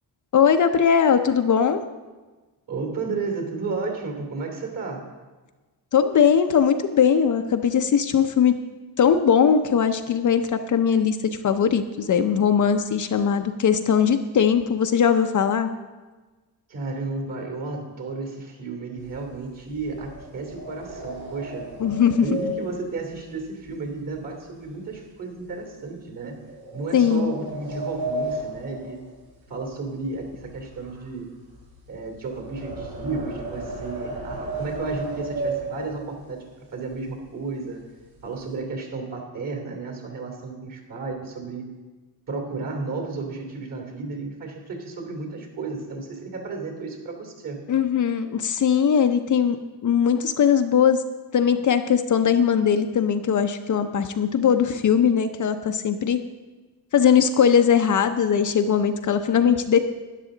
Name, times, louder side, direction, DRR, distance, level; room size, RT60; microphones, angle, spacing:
voice 1, 0.3-1.8 5.9-8.5 9.0-11.2 11.4-15.7 21.8-22.3 26.9-27.3 47.7-51.0 51.3-56.2 56.9-59.8, left 7 dB, 45° left, 7 dB, 0.6 m, -20 dB
voice 2, 2.7-5.1 16.7-21.7 22.2-26.4 26.7-29.0 29.5-31.3 31.9-36.4 36.7-37.8 38.2-41.6 42.3-47.6, right 3 dB, 50° right, 2 dB, 3.1 m, -33 dB
sound 1, 19.0-24.3 24.6-25.0 25.5-25.6 26.4-29.8 30.0-36.3 36.9-37.0 37.3-37.5 37.9-38.5, right 2 dB, 70° right, 4.2 m, -34 dB
12.5 x 10.0 x 3.9 m, 1.3 s
cardioid pair, 115°, 43 cm